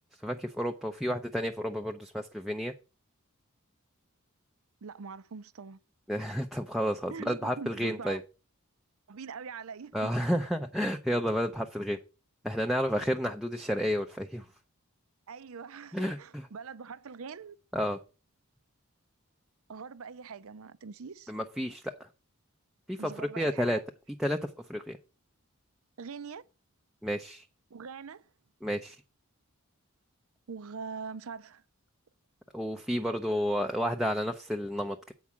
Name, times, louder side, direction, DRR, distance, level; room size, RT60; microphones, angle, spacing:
voice 1, 0.2-2.7 6.1-8.2 9.9-12.0 12.4-14.4 15.9-16.4 17.7-18.0 21.3-22.1 22.9-23.8 24.2-25.0 27.0-27.4 28.6-29.0 32.5-35.1, equal, ahead, 0.5 m, -31 dB
voice 2, 4.8-5.8 7.1-8.2 9.1-10.1 15.3-17.6 19.7-21.3 23.0-23.8 26.0-26.5 27.7-28.3 30.5-31.6, right 5 dB, 70° right, 0.5 m, -43 dB
8.4 x 4.7 x 7.2 m
head